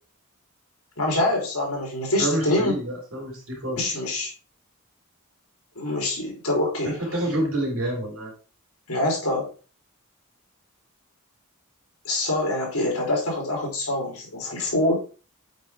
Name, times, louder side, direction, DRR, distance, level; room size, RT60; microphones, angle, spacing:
voice 1, 1.0-2.7 3.8-4.3 5.8-7.0 8.9-9.5 12.0-14.9, left 1 dB, 80° left, -2 dB, 3.6 m, -25 dB
voice 2, 2.2-4.0 6.8-8.3, right 1 dB, 70° right, -2 dB, 3.9 m, -28 dB
8.0 x 5.0 x 3.4 m, 0.36 s
head